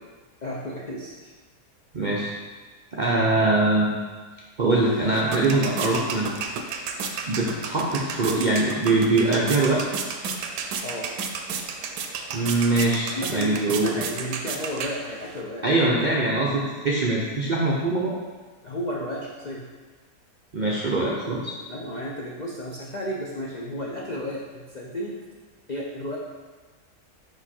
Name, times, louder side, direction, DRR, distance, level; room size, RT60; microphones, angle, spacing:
voice 1, 0.4-1.3 10.8-11.1 13.1-15.6 18.6-19.7 21.7-25.1 25.7-26.2, equal, 70° left, -3 dB, 0.4 m, -33 dB
voice 2, 1.9-2.3 2.9-3.9 4.6-6.3 7.3-9.8 12.3-13.9 15.6-18.1 20.5-21.5, right 2 dB, 60° right, -5 dB, 0.5 m, -22 dB
sound 1, 4.7-15.4, right 5 dB, 85° right, 1.2 m, -33 dB
5.2 x 4.8 x 4.3 m, 1.4 s
omnidirectional pair, 1.7 m